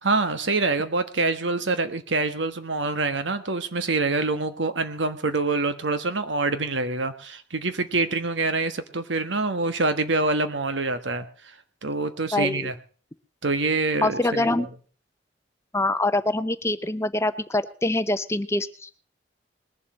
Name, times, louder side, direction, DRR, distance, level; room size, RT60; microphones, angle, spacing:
voice 1, 0.0-11.5 11.8-12.7 13.4-14.7, right 3 dB, 80° right, 10 dB, 1.4 m, -26 dB
voice 2, 12.3-12.7 14.0-14.7 15.7-18.9, left 2 dB, 15° left, 12 dB, 0.6 m, -24 dB
20.5 x 7.5 x 6.3 m, 0.42 s
head